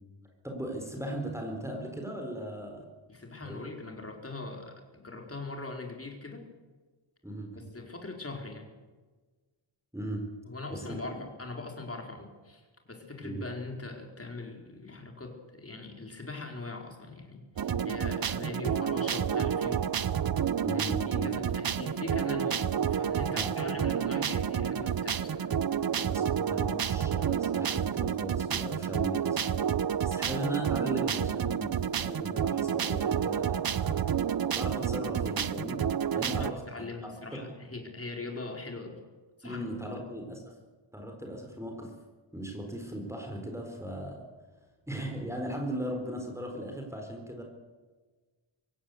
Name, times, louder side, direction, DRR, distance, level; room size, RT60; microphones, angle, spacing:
voice 1, 0.4-2.9 3.4-3.6 7.2-7.7 9.9-10.3 10.7-11.0 13.2-13.4 20.6-21.3 23.3-23.8 25.9-29.5 30.0-34.0 34.6-35.9 36.1-37.4 39.4-40.5 40.9-41.9 42.3-44.2 44.9-47.4, right 1 dB, 5° right, 2 dB, 4.1 m, -37 dB
voice 2, 3.1-6.5 7.5-8.7 10.5-19.9 20.7-25.5 36.1-39.0 39.4-40.0, left 3 dB, 30° left, 2 dB, 4.6 m, -41 dB
sound 1, 17.6-36.5, right 8 dB, 50° right, 0.8 m, -30 dB
24.5 x 16.0 x 8.3 m, 1.3 s
wide cardioid pair, 140°, 47 cm